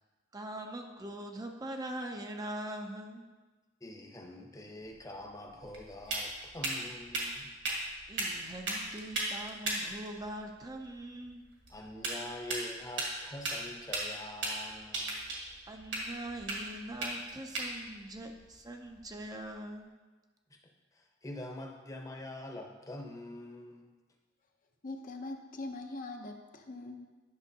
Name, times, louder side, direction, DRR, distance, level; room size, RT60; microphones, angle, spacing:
voice 1, 0.3-3.2 8.1-11.5 15.7-19.9, right 1 dB, 20° right, 3 dB, 0.5 m, -42 dB
voice 2, 3.8-7.5 11.7-15.3 20.5-20.6 20.9-23.9, left 1 dB, 20° left, 1 dB, 0.8 m, -45 dB
sound 1, 4.8-19.5, right 2 dB, 65° right, 1.8 m, -39 dB
voice 3, 24.8-27.1, left 2 dB, 45° left, 4 dB, 0.6 m, -42 dB
10.5 x 6.1 x 2.8 m, 1.3 s
head